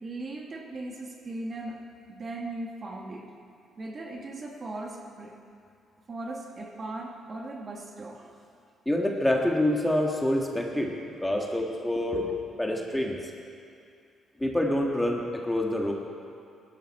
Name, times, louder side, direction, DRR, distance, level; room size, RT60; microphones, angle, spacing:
voice 1, 0.0-1.8 2.1-3.3 3.8-5.4 6.1-8.4 12.1-12.3 12.8-12.9, right 2 dB, 40° right, 0 dB, 2.0 m, -38 dB
voice 2, 8.8-10.9 11.2-12.2 12.6-13.3 14.4-15.9, left 1 dB, 10° left, 0 dB, 1.6 m, -26 dB
17.5 x 12.5 x 4.4 m, 2.4 s
cardioid pair, 90°, 0 cm